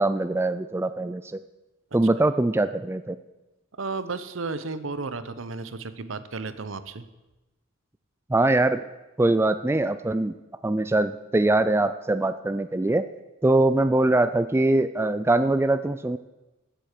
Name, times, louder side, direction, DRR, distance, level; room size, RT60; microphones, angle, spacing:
voice 1, 0.0-1.4 1.9-3.2 8.3-8.8 9.2-10.3 10.6-13.1 13.4-16.2, right 2 dB, 10° right, 11 dB, 0.3 m, -22 dB
voice 2, 3.8-7.1, right 3 dB, 70° right, 13 dB, 0.9 m, -33 dB
15.5 x 7.7 x 6.6 m, 1.0 s
head